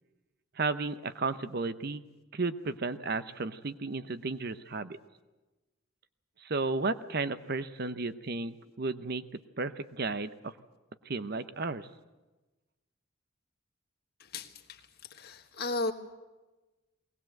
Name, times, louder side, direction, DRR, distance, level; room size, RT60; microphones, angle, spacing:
voice 1, 0.6-2.0 2.3-5.0 6.4-10.5 11.1-11.9, right 3 dB, 50° right, 12 dB, 0.8 m, -33 dB
voice 2, 14.3-14.8 15.1-15.9, left 2 dB, 50° left, 5 dB, 1.6 m, -34 dB
20.5 x 18.5 x 7.8 m, 1.1 s
head